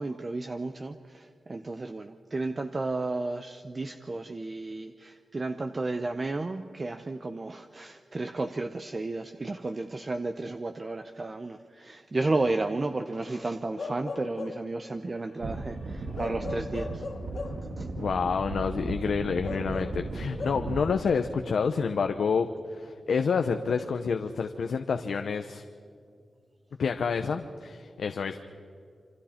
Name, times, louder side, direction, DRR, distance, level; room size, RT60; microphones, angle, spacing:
voice 1, 0.0-17.0 17.8-17.9, right 2 dB, 30° right, 7 dB, 0.7 m, -33 dB
Bark / Livestock farm animals working animals, 13.8-14.8 16.2-17.7 19.4-20.6, left 4 dB, 50° left, 1.3 m, -38 dB
sound 1, 15.4-20.9, right 3 dB, 85° right, 2.3 m, -36 dB
voice 2, 18.0-25.6 26.8-28.4, left 5 dB, 75° left, 6 dB, 0.8 m, -28 dB
28.0 x 25.5 x 4.4 m, 2.3 s
wide cardioid pair, 140°, 0 cm